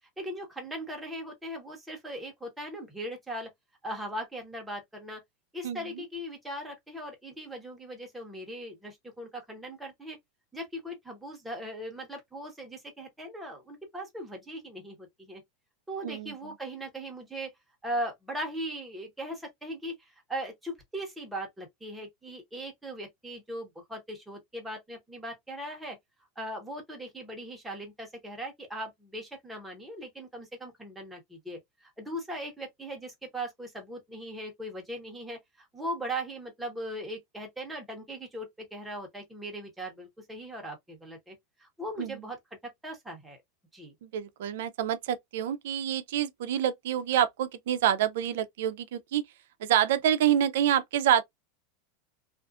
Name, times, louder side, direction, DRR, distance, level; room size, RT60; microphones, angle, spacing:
voice 1, 0.2-3.5 3.8-5.2 5.5-10.2 10.5-15.4 15.9-17.5 17.8-26.0 26.4-42.4 42.6-43.4 43.7-43.9, right 1 dB, 5° right, 0.9 m, -39 dB
voice 2, 16.0-16.3 42.0-42.2 44.0-49.2 49.6-51.2, right 10 dB, 75° right, 0.4 m, -27 dB
2.4 x 2.4 x 2.3 m
supercardioid pair, 150°, 0 cm